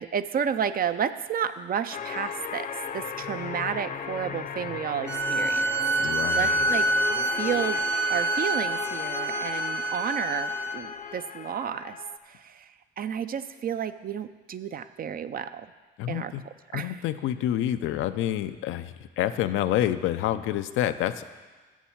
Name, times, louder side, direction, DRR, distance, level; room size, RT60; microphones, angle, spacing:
voice 1, 0.0-2.7 2.9-5.7 6.3-6.9 7.2-12.0 12.2-15.7 16.1-16.3 16.7-17.0, right 8 dB, 45° right, 11 dB, 0.5 m, -31 dB
sound 1, 1.9-12.2, left 7 dB, 45° left, 0.6 m, -36 dB
sound 2, 5.1-10.8, right 2 dB, 70° right, 0.8 m, -27 dB
voice 2, 6.0-6.7 16.0-16.4 16.7-21.2, left 12 dB, 85° left, 11 dB, 0.5 m, -28 dB
7.2 x 7.0 x 7.3 m, 1.3 s
cardioid pair, 90°, 20 cm